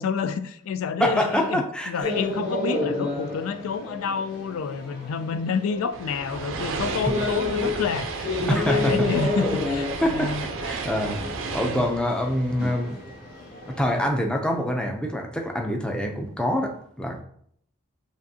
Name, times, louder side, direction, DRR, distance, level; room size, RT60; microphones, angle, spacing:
voice 1, 0.0-10.4 11.6-11.9, left 5 dB, 85° left, 11 dB, 0.3 m, -29 dB
voice 2, 1.0-1.9 7.1-7.2 8.5-9.1 10.0-13.0 13.7-17.2, equal, 5° left, 2 dB, 0.5 m, -25 dB
sound 1, 2.0-14.1, left 2 dB, 45° left, 1.6 m, -31 dB
sound 2, 5.9-13.3, right 4 dB, 70° right, 0.5 m, -33 dB
7.2 x 2.6 x 2.7 m, 0.65 s
head